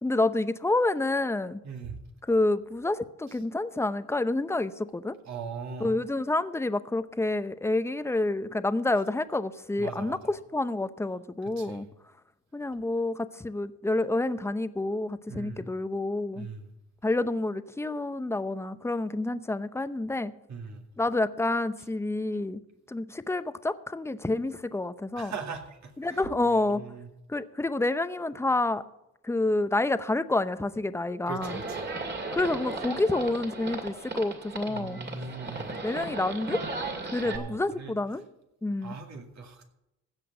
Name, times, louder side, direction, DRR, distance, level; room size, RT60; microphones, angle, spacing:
voice 1, 0.0-1.6 2.3-5.2 5.8-11.9 12.5-16.5 17.0-20.3 21.0-22.6 22.9-25.3 26.0-26.8 27.3-28.8 29.2-31.6 32.3-35.0 35.8-36.6 37.0-38.2 38.6-39.0, left 2 dB, 10° left, 13 dB, 0.7 m, -28 dB
voice 2, 1.6-2.0 3.3-3.4 5.3-6.0 9.8-10.2 11.6-11.9 15.3-15.7 16.3-16.7 20.5-20.9 25.2-27.1 31.3-31.9 34.7-35.7 37.2-37.9 38.8-39.7, right 5 dB, 65° right, 3 dB, 2.2 m, -40 dB
Livestock farm animals working animals, 31.4-37.4, right 3 dB, 35° right, 2.4 m, -36 dB
16.0 x 5.9 x 8.0 m, 0.88 s
cardioid pair, 90°, 30 cm